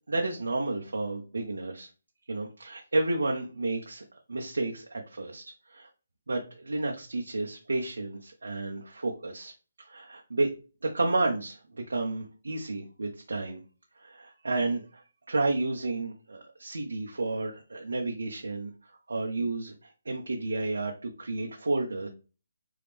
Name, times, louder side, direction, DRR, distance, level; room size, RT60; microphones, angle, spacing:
voice 1, 0.1-1.9 2.3-4.0 4.3-5.4 5.7-5.9 6.3-9.5 9.8-10.5 10.8-13.6 14.0-18.7 19.1-22.1, right 2 dB, 90° right, 0 dB, 0.9 m, -31 dB
3.6 x 3.5 x 3.4 m, 0.34 s
hypercardioid pair, 160°, 0 cm